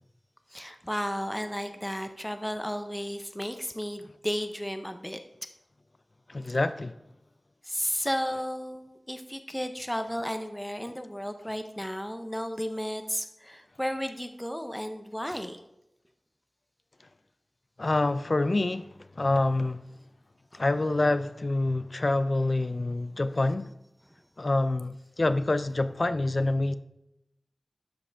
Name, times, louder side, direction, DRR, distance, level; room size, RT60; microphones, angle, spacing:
voice 1, 0.5-5.2 7.6-15.6 20.5-20.6, equal, 5° left, 0.6 m, -33 dB
voice 2, 6.3-6.9 17.8-18.9 19.2-19.8 20.6-23.7 24.4-26.7, left 2 dB, 45° left, 0.4 m, -26 dB
12.5 x 4.9 x 3.3 m
wide cardioid pair, 70°, 0 cm